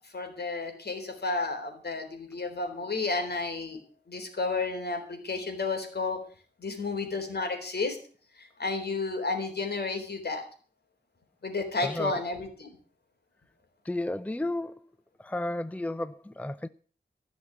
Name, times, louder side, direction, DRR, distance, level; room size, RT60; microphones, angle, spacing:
voice 1, 0.1-3.8 4.1-6.2 6.6-8.0 8.4-10.4 11.4-12.7, left 3 dB, 65° left, 4.0 m, -32 dB
voice 2, 11.8-12.2 13.8-14.8 15.2-16.7, left 1 dB, 10° left, 0.6 m, -32 dB
15.5 x 6.2 x 9.5 m
wide cardioid pair, 65°, 18 cm